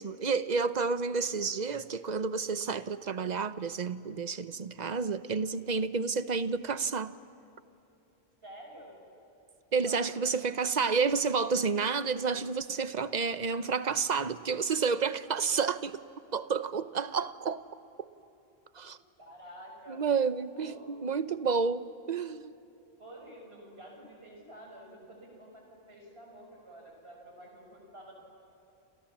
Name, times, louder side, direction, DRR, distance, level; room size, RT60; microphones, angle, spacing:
voice 1, 0.0-7.2 9.7-16.0 16.3-17.6 18.0-18.1 18.8-19.0 19.9-22.5, right 5 dB, 45° right, 0.9 m, -30 dB
voice 2, 8.4-9.0 9.8-10.4 19.2-20.0 20.5-21.0 23.0-28.1, right 1 dB, 70° right, 6.3 m, -50 dB
29.0 x 28.0 x 7.3 m
omnidirectional pair, 1.1 m